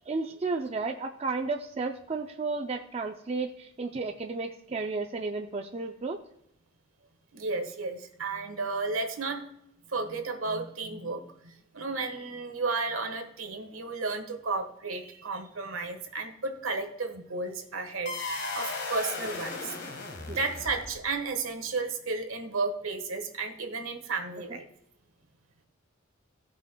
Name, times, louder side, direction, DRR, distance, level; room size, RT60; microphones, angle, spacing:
voice 1, 0.1-6.2 20.3-20.4, right 3 dB, 30° right, 3 dB, 0.4 m, -33 dB
voice 2, 7.3-9.4 9.9-18.1 18.5-19.9 20.3-24.6, right 3 dB, 75° right, 6 dB, 1.4 m, -33 dB
sound 1, 18.1-21.2, left 3 dB, 55° left, 1.5 m, -36 dB
17.0 x 5.7 x 2.2 m, 0.76 s
head